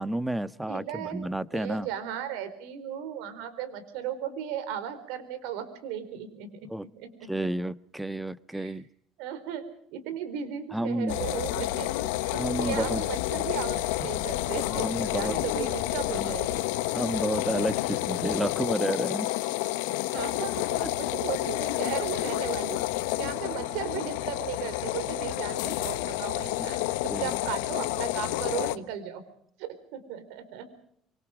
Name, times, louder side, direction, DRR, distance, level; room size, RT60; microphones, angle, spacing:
voice 1, 0.0-1.9 6.7-6.9 7.3-8.8 10.7-11.2 12.4-13.0 14.0-14.1 14.7-15.4 16.1-16.6 16.9-19.6 19.8-19.9 20.8-20.9 23.5-23.6 26.6-26.7 27.1-27.3, right 1 dB, 10° right, 14 dB, 1.3 m, -31 dB
voice 2, 0.6-1.2 1.5-6.5 7.0-7.3 8.5-8.8 9.2-9.7 9.9-16.7 17.5-17.8 20.1-22.8 23.2-29.2 29.6-30.7, right 9 dB, 80° right, 11 dB, 4.4 m, -36 dB
sound 1, 11.1-28.8, left 17 dB, 85° left, 1.1 m, -30 dB
25.5 x 25.0 x 5.1 m, 0.67 s
hypercardioid pair, 70°, 0 cm